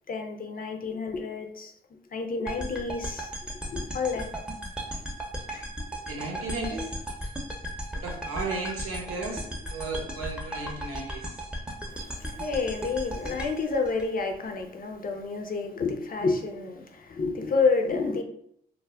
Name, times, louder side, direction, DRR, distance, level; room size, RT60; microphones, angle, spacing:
voice 1, 0.1-1.7 2.1-3.3 3.7-4.3 11.9-18.2, left 4 dB, 40° left, 0.5 m, -29 dB
sound 1, 2.5-14.6, equal, 5° right, 0.6 m, -36 dB
voice 2, 6.1-6.9 7.9-11.4, right 3 dB, 85° right, 0.7 m, -35 dB
2.2 x 2.0 x 3.4 m
supercardioid pair, 45°, 21 cm